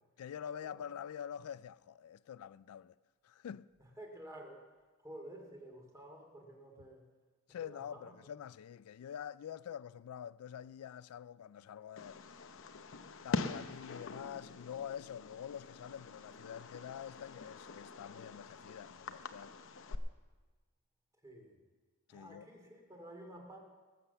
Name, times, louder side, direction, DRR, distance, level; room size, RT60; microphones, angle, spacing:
voice 1, 0.2-2.9 3.2-3.6 7.5-12.4 13.2-19.5 22.1-22.5, left 9 dB, 80° left, 0.3 m, -46 dB
voice 2, 3.8-4.6 5.0-7.1 7.6-8.2 21.2-21.6 22.1-23.6, right 1 dB, 15° right, 2.5 m, -51 dB
Fireworks, 12.0-20.0, left 3 dB, 60° left, 0.8 m, -44 dB
19.5 x 7.7 x 7.0 m
head